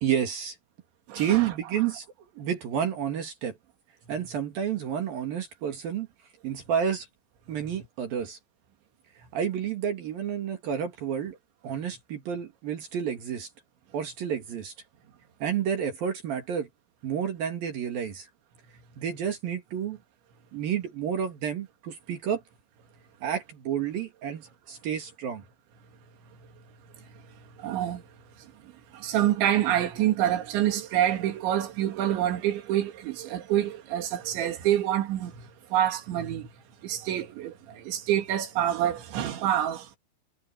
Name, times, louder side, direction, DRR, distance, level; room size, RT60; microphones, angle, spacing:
voice 1, 0.0-0.6 1.1-2.0 2.3-3.6 4.1-6.1 6.4-7.1 7.5-8.4 9.3-11.4 11.6-13.5 13.9-14.7 15.4-16.7 17.0-18.3 19.0-20.0 20.5-22.4 23.2-25.4, right 8 dB, 55° right, 3.3 m, -30 dB
voice 2, 1.1-1.5 26.4-26.5 27.0-28.0 28.4-36.5 36.8-40.0, right 11 dB, 75° right, 4.6 m, -27 dB
omnidirectional pair, 5.5 m